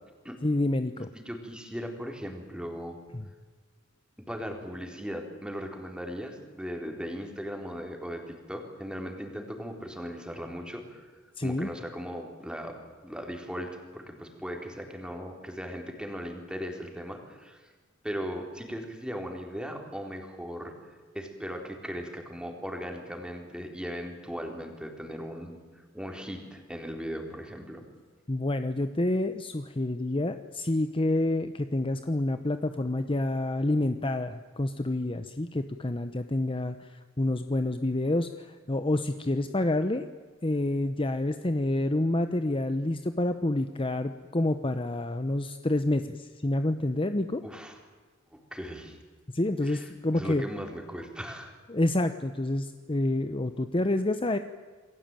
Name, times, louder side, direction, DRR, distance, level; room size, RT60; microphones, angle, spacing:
voice 1, 0.4-1.1 3.1-3.3 11.4-11.7 28.3-40.0 40.4-47.4 49.3-50.4 51.7-54.4, left 1 dB, 25° left, 9 dB, 0.9 m, -28 dB
voice 2, 1.1-3.0 4.3-11.1 11.4-17.7 18.0-20.7 21.1-25.6 25.9-27.8 47.4-47.8 48.3-49.0 49.6-51.5, equal, 5° right, 3 dB, 4.2 m, -38 dB
28.5 x 21.0 x 9.1 m, 1.4 s
head